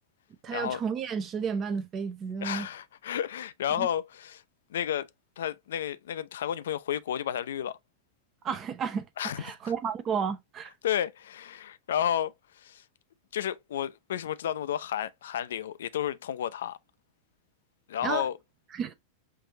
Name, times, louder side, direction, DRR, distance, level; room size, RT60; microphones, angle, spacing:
voice 1, 0.4-2.7 3.8-3.9 8.4-9.0 9.4-10.7 18.0-18.3 18.7-18.9, right 6 dB, 30° right, 0.5 m, -32 dB
voice 2, 2.4-4.4 4.7-5.1 5.4-7.8 9.2-9.7 10.8-12.8 13.3-16.8 17.9-18.4, left 10 dB, 60° left, 0.3 m, -32 dB
5.7 x 2.5 x 2.7 m
figure-of-eight pair, 90°, 0 cm